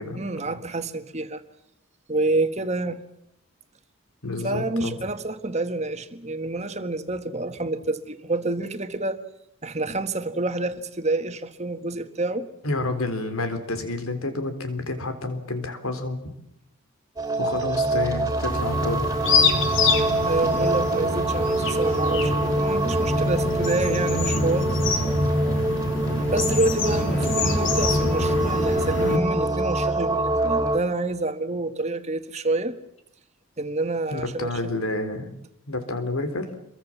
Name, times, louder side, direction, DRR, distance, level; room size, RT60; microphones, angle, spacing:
voice 1, 0.1-1.4 2.1-3.0 4.4-9.2 9.6-12.5 20.2-24.7 26.3-32.8 33.6-34.7, right 2 dB, 30° right, 9 dB, 1.6 m, -28 dB
voice 2, 4.2-5.1 12.6-16.3 17.4-19.1 19.7-19.9 34.1-35.3 35.7-36.5, left 2 dB, 85° left, 9 dB, 3.7 m, -29 dB
sound 1, 17.2-30.8, right 1 dB, 15° right, 3.0 m, -25 dB
sound 2, 18.4-29.2, left 3 dB, 60° left, 2.9 m, -26 dB
27.0 x 23.0 x 7.3 m, 0.79 s
head